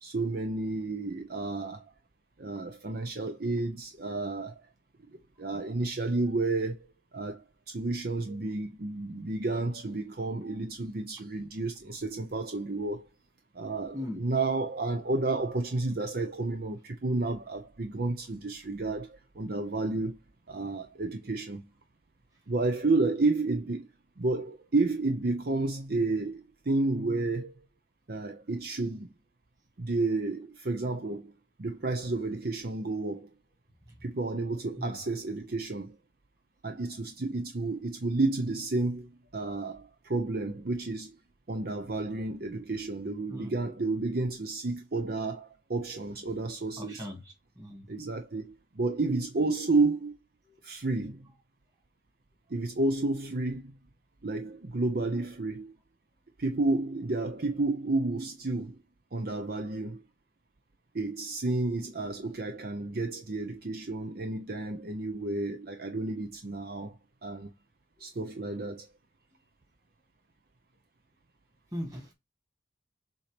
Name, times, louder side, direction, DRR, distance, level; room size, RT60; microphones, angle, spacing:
voice 1, 0.0-1.8 2.4-4.6 5.4-6.8 7.1-13.1 13.5-20.2 20.5-21.6 22.5-23.9 24.2-27.6 28.1-29.1 29.8-31.3 31.6-33.3 34.0-35.9 36.6-41.2 41.5-47.0 47.9-50.1 50.6-51.2 52.5-53.7 54.2-55.8 56.4-58.8 59.1-60.0 60.9-67.5 68.0-68.9, right 2 dB, 50° right, 0.7 m, -31 dB
voice 2, 43.3-43.6 46.8-47.9 50.4-50.6 71.7-72.1, left 1 dB, 20° right, 2.1 m, -39 dB
7.3 x 2.9 x 5.1 m
head